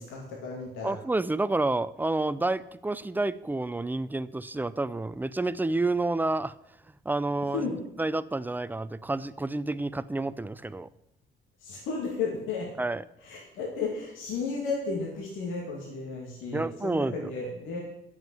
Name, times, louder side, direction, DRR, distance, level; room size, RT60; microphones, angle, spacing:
voice 1, 0.0-1.0 7.5-7.8 11.6-12.7 13.2-17.8, left 4 dB, 90° left, -2 dB, 2.4 m, -33 dB
voice 2, 0.8-6.5 7.0-7.7 8.0-10.9 12.8-13.0 16.5-17.3, right 2 dB, 10° right, 16 dB, 0.5 m, -29 dB
9.2 x 7.3 x 7.8 m, 0.81 s
cardioid pair, 90°, 20 cm